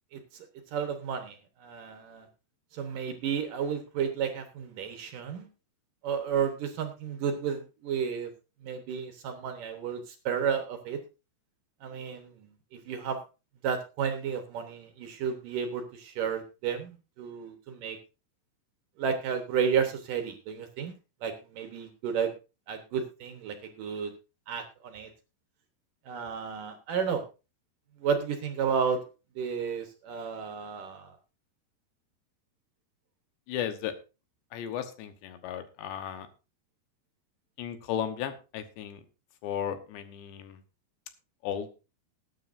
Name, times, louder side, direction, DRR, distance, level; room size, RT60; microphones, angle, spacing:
voice 1, 0.1-0.5 0.7-2.3 2.7-5.5 6.0-8.3 8.6-11.0 11.8-13.2 13.6-18.0 19.0-20.9 21.2-22.3 22.7-24.1 24.5-25.1 26.1-27.2 28.0-29.0 29.4-31.1, right 7 dB, 65° right, 6 dB, 2.5 m, -32 dB
voice 2, 33.5-34.0 34.5-36.3 37.6-39.0 39.4-40.6 41.4-41.7, left 9 dB, 85° left, 9 dB, 3.5 m, -35 dB
19.5 x 9.4 x 2.6 m, 0.30 s
omnidirectional pair, 4.9 m